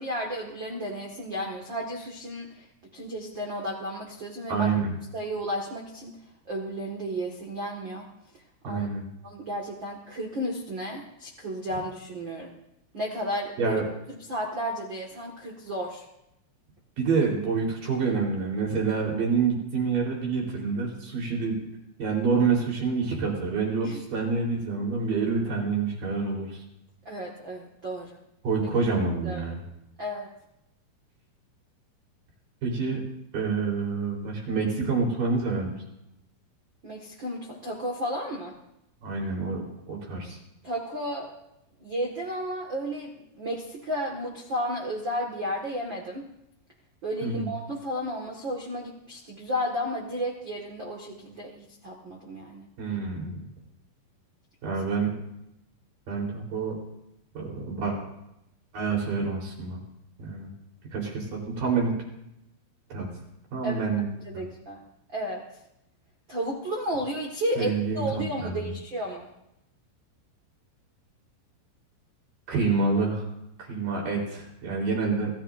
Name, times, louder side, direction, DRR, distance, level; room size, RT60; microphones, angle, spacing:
voice 1, 0.0-2.6 2.9-4.7 5.1-6.1 6.5-8.0 8.6-8.9 9.2-12.5 12.9-13.8 14.3-16.0 23.8-24.0 27.0-28.2 29.2-29.5 30.0-30.3 36.8-38.6 40.6-41.3 41.8-46.3 47.0-52.6 63.6-63.7 64.2-64.8 65.1-65.4 66.3-69.3, equal, 80° right, -1 dB, 1.0 m, -33 dB
voice 2, 4.5-4.9 8.6-9.0 13.6-13.8 17.0-21.6 22.0-26.6 28.4-29.6 32.6-33.0 33.3-35.7 39.0-40.4 47.2-47.5 52.8-53.4 54.6-55.1 56.1-56.8 57.3-58.0 58.7-59.8 60.2-60.5 60.9-61.9 62.9-63.1 63.5-64.1 64.3-64.4 67.6-68.7 72.5-73.2 73.6-75.3, right 4 dB, 45° right, -1 dB, 5.3 m, -27 dB
26.5 x 16.0 x 2.6 m, 0.83 s
omnidirectional pair, 5.4 m